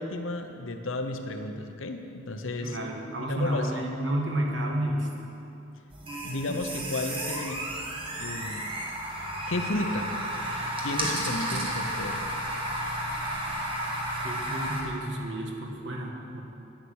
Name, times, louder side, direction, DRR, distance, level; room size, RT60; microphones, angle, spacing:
voice 1, 0.0-2.8 3.2-3.8 6.2-7.6 8.2-8.7 9.5-10.1 10.8-12.2, left 2 dB, 75° left, 6 dB, 0.9 m, -33 dB
voice 2, 2.6-5.2 14.2-16.4, right 1 dB, 60° right, 0 dB, 1.5 m, -31 dB
sound 1, 5.9-14.8, right 1 dB, 25° right, 1.3 m, -32 dB
10.0 x 8.7 x 6.3 m, 2.8 s
head